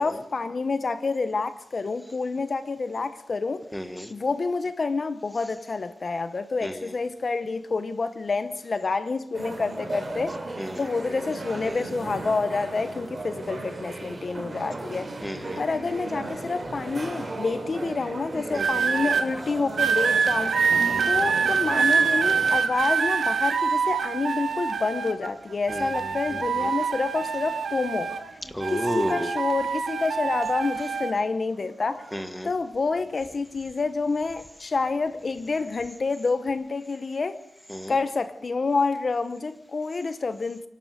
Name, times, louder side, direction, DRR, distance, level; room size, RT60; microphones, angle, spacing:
voice 1, 0.0-3.6 4.1-10.4 10.8-15.1 15.6-20.5 21.0-28.1 28.7-32.1 32.4-37.4 37.9-40.6, left 4 dB, 45° left, 0.8 m, -28 dB
voice 2, 3.7-4.1 6.6-6.9 10.6-10.8 15.2-15.6 18.5-19.1 20.9-21.3 25.7-25.9 26.3-26.7 28.5-29.3 32.1-32.5 37.7-37.9, equal, 5° left, 1.5 m, -33 dB
sound 1, 9.3-22.6, right 2 dB, 35° right, 3.5 m, -36 dB
sound 2, 18.5-19.2 19.8-25.3 25.7-28.3 28.6-31.1 31.9-32.2, right 6 dB, 85° right, 2.0 m, -25 dB
29.0 x 11.5 x 7.7 m
wide cardioid pair, 155°, 0 cm